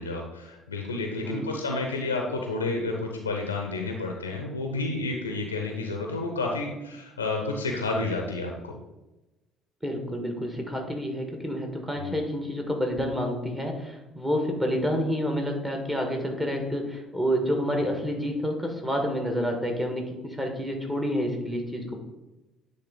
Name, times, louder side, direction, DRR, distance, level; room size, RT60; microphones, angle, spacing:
voice 1, 0.0-8.8 12.0-12.1, left 3 dB, 80° left, 2 dB, 0.6 m, -30 dB
voice 2, 1.1-1.5 9.8-22.0, equal, 10° right, 2 dB, 1.5 m, -29 dB
9.2 x 3.3 x 3.8 m, 1.0 s
figure-of-eight pair, 50°, 0 cm